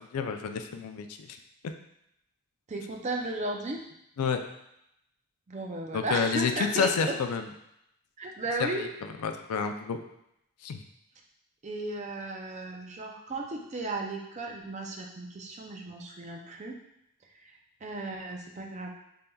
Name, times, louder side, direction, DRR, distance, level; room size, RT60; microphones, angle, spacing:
voice 1, 0.0-1.4 4.2-4.4 5.9-7.5 8.6-8.7 9.2-10.0 10.6-10.8, left 6 dB, 85° left, 7 dB, 0.4 m, -29 dB
voice 2, 2.7-3.8 5.5-7.1 8.2-8.8 11.6-16.8 17.4-17.5 17.8-18.9, right 2 dB, 30° right, 1 dB, 0.5 m, -35 dB
5.3 x 3.4 x 2.3 m, 0.81 s
head